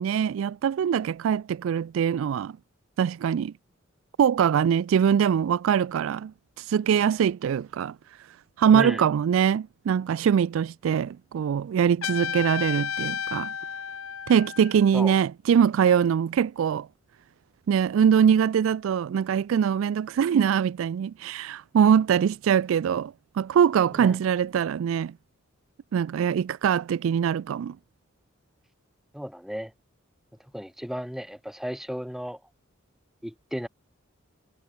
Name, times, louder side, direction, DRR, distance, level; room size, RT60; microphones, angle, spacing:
voice 1, 0.0-2.5 3.0-3.5 4.2-6.3 6.6-13.5 14.3-16.9 17.7-25.1 25.9-27.8, right 8 dB, 70° right, 0.3 m, -23 dB
voice 2, 8.7-9.0 14.9-15.1 23.9-24.2 29.1-29.7 30.5-32.4 33.2-33.7, equal, ahead, 1.6 m, -34 dB
Trumpet, 12.0-14.9, left 8 dB, 90° left, 1.0 m, -32 dB
head